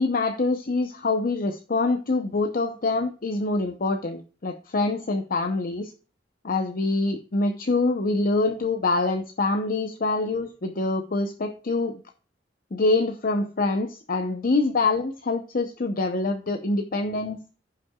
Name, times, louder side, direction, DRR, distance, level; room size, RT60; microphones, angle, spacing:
voice 1, 0.0-5.9 6.4-12.0 12.7-17.4, left 3 dB, 50° left, 5 dB, 0.7 m, -25 dB
15.0 x 5.8 x 2.3 m, 0.39 s
head